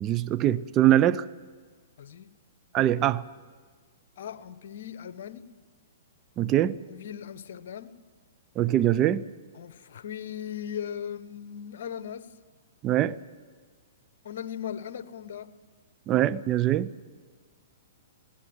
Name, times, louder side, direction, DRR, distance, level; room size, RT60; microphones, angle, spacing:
voice 1, 0.0-1.2 2.7-3.2 6.4-6.8 8.6-9.2 12.8-13.1 16.1-16.9, right 12 dB, 30° right, 0.7 m, -23 dB
voice 2, 2.0-2.3 4.2-5.4 6.9-7.9 9.5-12.3 14.2-15.5, left 9 dB, 60° left, 1.2 m, -38 dB
21.5 x 17.0 x 8.1 m
hypercardioid pair, 125°, 0 cm